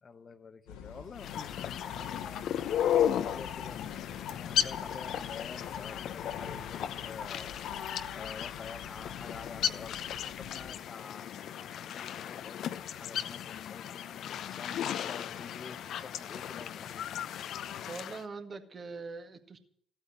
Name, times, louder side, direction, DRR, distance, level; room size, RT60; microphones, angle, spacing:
voice 1, 0.0-4.0 4.4-7.7 8.1-14.0 14.5-17.1, left 5 dB, 40° left, 8 dB, 1.0 m, -48 dB
sound 1, 0.7-10.7, left 7 dB, 75° left, 1.5 m, -49 dB
sound 2, 1.2-18.2, left 10 dB, 60° left, 0.8 m, -35 dB
voice 2, 17.9-19.6, right 4 dB, 35° right, 6 dB, 2.0 m, -42 dB
15.5 x 8.9 x 9.4 m, 0.65 s
hypercardioid pair, 50°, 0 cm